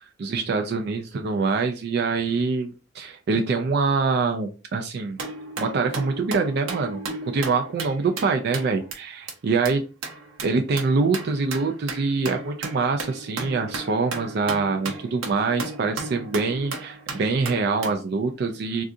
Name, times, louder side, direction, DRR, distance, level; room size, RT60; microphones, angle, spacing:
voice 1, 0.2-5.2 5.6-9.8 10.4-18.8, right 4 dB, 55° right, 5 dB, 0.4 m, -25 dB
sound 1, 5.2-8.9 9.3-9.4 9.7-9.8 10.0-18.0, right 3 dB, 80° right, 0.7 m, -35 dB
3.7 x 2.4 x 2.5 m, 0.33 s
head